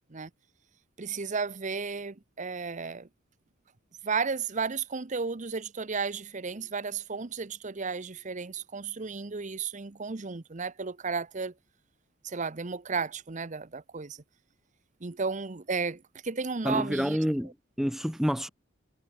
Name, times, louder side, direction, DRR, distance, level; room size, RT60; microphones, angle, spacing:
voice 1, 1.0-3.1 4.0-11.5 12.2-14.2 15.0-17.2, right 5 dB, 35° right, 0.8 m, -33 dB
voice 2, 16.6-18.5, equal, ahead, 0.8 m, -28 dB
head